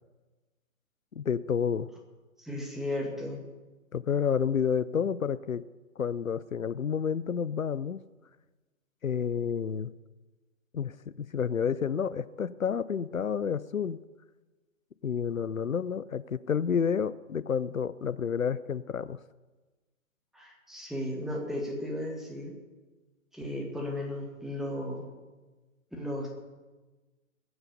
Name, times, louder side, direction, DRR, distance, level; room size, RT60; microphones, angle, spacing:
voice 1, 1.2-1.9 3.9-5.6 6.0-8.0 9.0-9.9 10.7-14.0 15.0-19.2, left 7 dB, 85° left, 17 dB, 0.6 m, -30 dB
voice 2, 2.4-3.4 20.3-22.5 23.3-25.1 25.9-26.3, left 1 dB, ahead, -1 dB, 2.0 m, -35 dB
21.0 x 8.0 x 6.6 m, 1.2 s
figure-of-eight pair, 125°, 40 cm